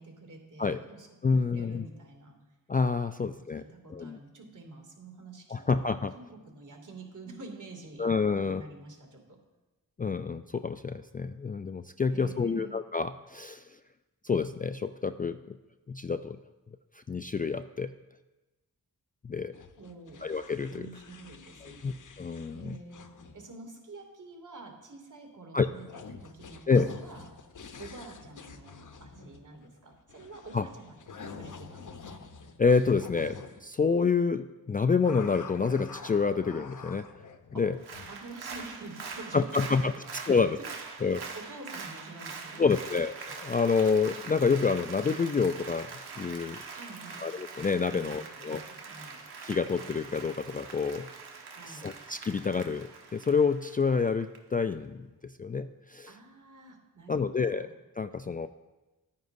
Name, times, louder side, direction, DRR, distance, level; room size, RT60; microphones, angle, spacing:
voice 1, 0.0-2.4 3.5-5.7 6.1-9.4 12.1-12.7 19.8-20.2 20.7-21.9 22.5-23.1 23.3-27.3 27.8-32.2 37.5-37.7 38.1-40.4 41.0-42.8 46.7-47.2 47.9-49.2 51.5-51.9 56.1-57.7, right 3 dB, 50° right, 1 dB, 2.5 m, -48 dB
voice 2, 1.2-1.9 2.7-3.6 3.9-4.2 5.5-6.1 8.0-8.6 10.0-13.7 14.2-15.6 15.9-16.4 17.1-17.9 19.2-19.5 20.2-20.9 21.6-22.8 25.5-25.7 26.7-26.9 30.5-30.7 32.6-37.1 37.6-37.8 39.3-40.6 41.0-41.2 42.6-45.9 46.2-46.6 47.2-48.6 49.4-51.1 51.7-56.1 57.1-57.7 58.0-58.5, left 5 dB, 25° left, 10 dB, 0.3 m, -28 dB
sound 1, 19.5-23.5 25.7-33.6 35.0-38.2, left 5 dB, 50° left, 0.9 m, -47 dB
Applause, 37.7-54.4 54.7-54.8, right 5 dB, 90° right, 1.1 m, -43 dB
10.5 x 9.3 x 2.6 m, 1.1 s
cardioid pair, 45°, 38 cm